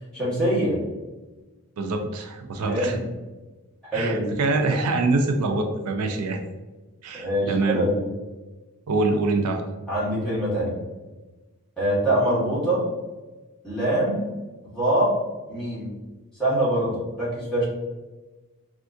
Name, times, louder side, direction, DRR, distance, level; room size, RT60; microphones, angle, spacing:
voice 1, 0.1-0.8 2.6-3.0 3.9-4.3 7.1-8.0 9.9-10.7 11.8-12.8 13.6-14.3 14.6-15.1 15.5-15.9 16.4-17.7, right 1 dB, 5° left, -9 dB, 1.2 m, -24 dB
voice 2, 1.8-3.0 3.9-6.4 7.0-7.8 8.9-9.6, right 3 dB, 90° right, 4 dB, 0.4 m, -24 dB
3.5 x 2.4 x 2.5 m, 1.2 s
head